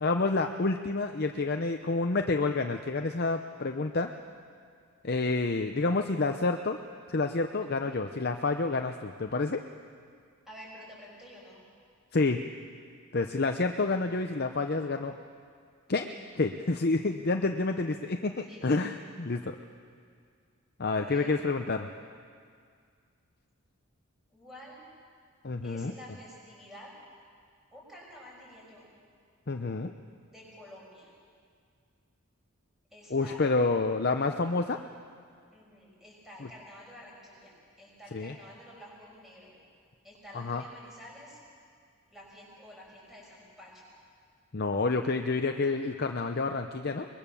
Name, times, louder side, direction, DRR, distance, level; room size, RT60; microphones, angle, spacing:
voice 1, 0.0-4.1 5.0-6.8 7.1-9.6 12.1-12.4 13.1-15.1 15.9-16.1 16.4-19.6 20.8-21.9 25.4-25.9 29.5-29.9 33.1-34.8 38.1-38.3 40.3-40.6 44.5-47.1, left 3 dB, 45° left, 5 dB, 0.7 m, -28 dB
voice 2, 10.5-11.6 18.4-18.7 21.0-21.3 24.3-24.8 25.6-26.9 27.7-28.9 30.3-31.1 32.9-33.4 35.5-39.5 40.0-41.4 42.1-43.9, equal, ahead, -5 dB, 6.8 m, -50 dB
23.0 x 21.5 x 7.0 m, 2.1 s
head